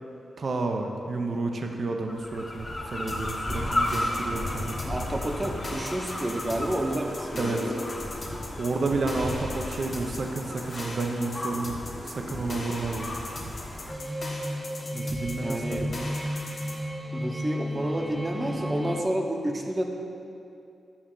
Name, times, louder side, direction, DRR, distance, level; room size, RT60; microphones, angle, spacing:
voice 1, 0.4-4.8 7.4-7.7 8.6-11.8 12.0-13.2 14.9-15.9, right 3 dB, 50° right, 3 dB, 0.6 m, -30 dB
sound 1, 2.1-13.9, left 1 dB, 20° left, 0.9 m, -34 dB
sound 2, 3.1-16.8, left 1 dB, 45° left, 1.1 m, -39 dB
voice 2, 4.9-7.9 15.4-16.1 17.1-19.8, right 1 dB, 25° right, 2 dB, 0.8 m, -30 dB
sound 3, 13.9-19.0, equal, 5° left, 0.4 m, -33 dB
8.6 x 6.0 x 3.9 m, 2.6 s
cardioid pair, 95°, 0 cm